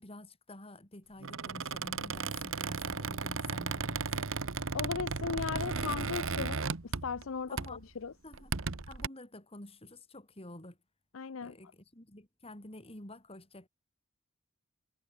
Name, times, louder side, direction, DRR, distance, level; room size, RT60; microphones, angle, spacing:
voice 1, 0.0-4.3 7.5-7.8 8.2-8.5 8.9-10.8 11.4-13.7, left 1 dB, 30° left, 5.2 m, -49 dB
Squeak, 1.2-7.3 7.6-7.8 8.3-9.1, right 4 dB, 75° right, 1.1 m, -35 dB
voice 2, 4.7-8.1 11.1-11.5, left 5 dB, 80° left, 0.6 m, -37 dB
head